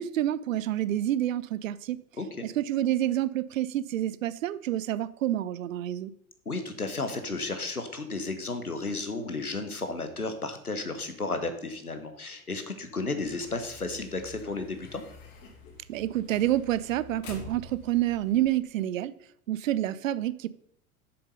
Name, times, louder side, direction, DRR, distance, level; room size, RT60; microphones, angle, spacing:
voice 1, 0.0-2.0 2.4-6.1 15.9-19.1 19.5-20.5, right 13 dB, 65° right, 0.6 m, -28 dB
voice 2, 6.4-15.0, left 3 dB, 90° left, 1.2 m, -33 dB
sound 1, 13.2-18.5, left 3 dB, 60° left, 2.3 m, -48 dB
7.3 x 6.8 x 5.4 m
figure-of-eight pair, 80°, 43 cm